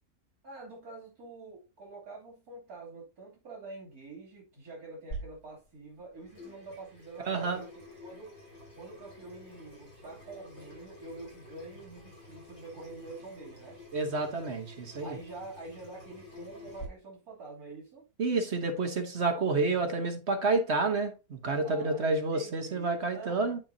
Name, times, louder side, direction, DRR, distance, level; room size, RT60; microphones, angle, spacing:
voice 1, 0.4-8.4 8.8-13.8 15.0-18.1 21.6-23.6, right 3 dB, 90° right, 3.5 m, -46 dB
Water tap faucet / Sink (filling or washing), 5.1-16.9, equal, 85° left, 6.1 m, -48 dB
voice 2, 7.3-7.6 13.9-15.2 18.2-21.1 21.4-23.6, right 3 dB, 50° right, 1.3 m, -29 dB
13.0 x 4.5 x 2.7 m
omnidirectional pair, 1.5 m